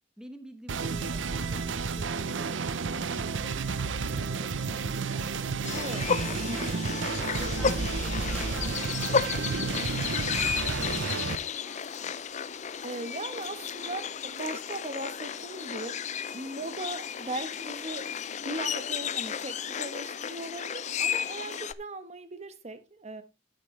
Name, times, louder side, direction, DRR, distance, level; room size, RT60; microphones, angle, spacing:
voice 1, 0.2-3.7 4.0-5.5 6.3-12.1, equal, 5° right, 1.0 m, -49 dB
sound 1, 0.7-11.3, right 4 dB, 80° right, 0.7 m, -31 dB
sound 2, 5.6-21.7, left 7 dB, 40° left, 0.5 m, -33 dB
voice 2, 5.7-6.1 6.5-6.7 12.8-16.0 16.3-18.1 18.4-23.2, right 2 dB, 35° right, 1.2 m, -38 dB
sound 3, 8.3-15.9 16.5-16.6, left 2 dB, 10° left, 2.7 m, -53 dB
10.0 x 9.4 x 3.2 m
head